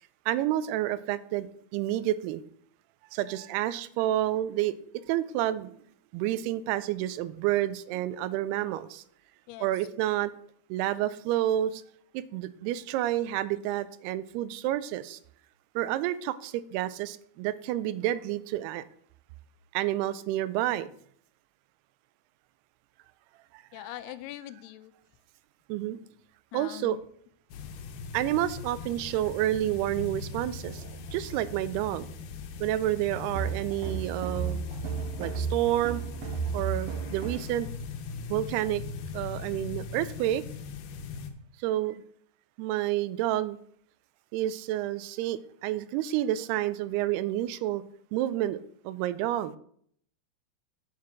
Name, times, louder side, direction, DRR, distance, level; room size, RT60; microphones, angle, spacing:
voice 1, 0.3-2.4 3.1-4.8 5.1-5.8 6.1-9.0 9.6-10.3 10.7-11.8 12.1-15.2 15.8-18.8 19.7-20.9 23.5-23.8 25.7-26.0 26.5-27.0 28.1-32.1 32.6-34.6 35.2-36.0 36.5-37.7 38.3-38.8 39.1-40.4 41.6-42.0 42.6-43.6 44.3-47.8 48.1-49.5, right 13 dB, 90° right, 15 dB, 2.6 m, -29 dB
voice 2, 23.7-24.9 26.5-27.0, left 15 dB, 90° left, 13 dB, 2.6 m, -42 dB
sound 1, 27.5-41.3, left 4 dB, 70° left, 2.1 m, -40 dB
sound 2, 33.3-37.5, right 6 dB, 65° right, 1.7 m, -33 dB
9.5 x 5.7 x 5.9 m, 0.64 s
omnidirectional pair, 4.5 m